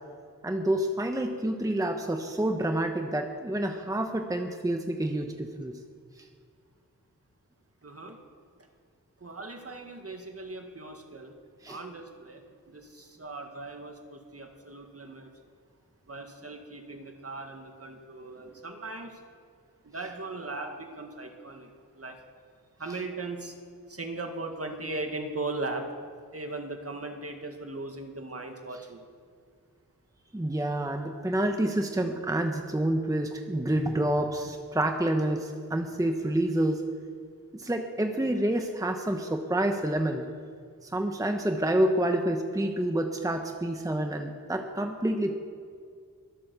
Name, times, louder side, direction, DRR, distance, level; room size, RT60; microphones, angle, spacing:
voice 1, 0.4-5.8 11.6-11.8 30.3-36.8 37.5-40.2 40.8-45.3, right 1 dB, 10° right, 4 dB, 1.0 m, -28 dB
voice 2, 7.8-8.2 9.2-11.3 11.7-15.3 16.1-19.2 19.8-22.2 22.8-23.6 23.9-25.9 26.3-29.0, right 2 dB, 40° right, 4 dB, 1.8 m, -38 dB
22.5 x 8.6 x 6.9 m, 2.1 s
wide cardioid pair, 100°, 35 cm